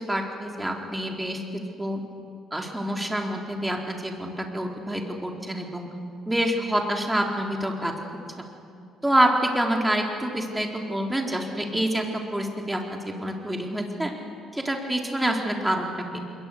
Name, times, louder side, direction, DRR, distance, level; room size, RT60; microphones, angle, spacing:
voice 1, 0.1-1.4 1.8-2.0 2.5-5.9 6.3-7.9 9.0-14.1 14.5-15.9, right 1 dB, 10° right, 1 dB, 4.0 m, -27 dB
27.5 x 22.0 x 6.7 m, 2.4 s
figure-of-eight pair, 50°, 0 cm